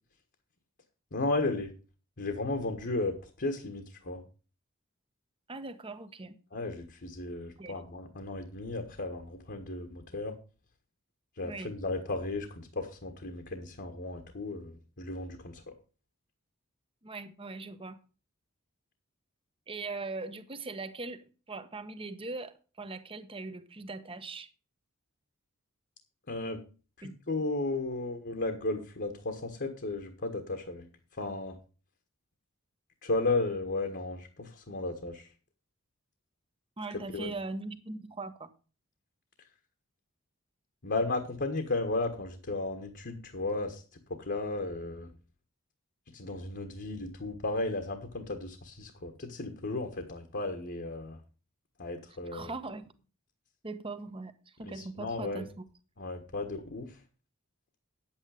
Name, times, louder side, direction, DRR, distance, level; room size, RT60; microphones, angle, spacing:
voice 1, 1.1-1.7 2.2-4.2 6.5-10.4 11.4-15.7 26.3-26.6 27.0-30.9 31.2-31.6 33.0-35.3 36.9-37.3 40.8-43.8 44.2-45.1 46.1-51.2 51.8-52.5 54.6-55.5 56.0-57.0, left 2 dB, 50° left, 1.5 m, -34 dB
voice 2, 5.5-6.4 7.6-7.8 11.4-11.7 17.0-18.0 19.7-24.5 27.0-27.2 36.8-38.5 52.3-52.9 53.6-55.6, right 3 dB, 25° right, 1.1 m, -40 dB
9.8 x 8.7 x 4.9 m
head